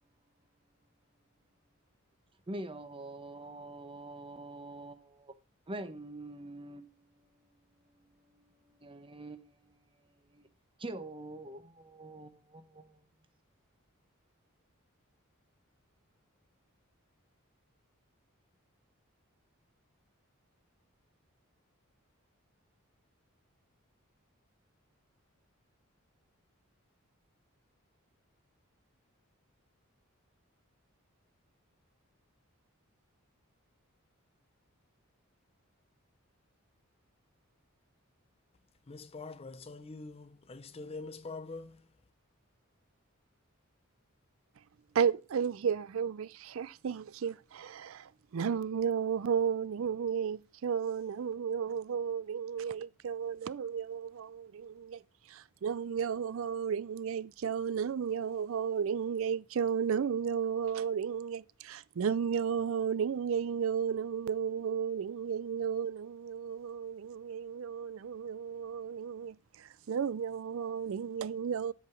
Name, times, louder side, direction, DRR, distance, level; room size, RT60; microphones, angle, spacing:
voice 1, 2.5-5.3 5.7-10.5 10.8-13.0, right 2 dB, 25° right, 0.9 m, -46 dB
voice 2, 38.9-41.8, left 3 dB, 30° left, 0.5 m, -44 dB
voice 3, 44.9-55.0 55.3-71.7, right 7 dB, 70° right, 0.4 m, -33 dB
8.0 x 4.7 x 7.0 m
head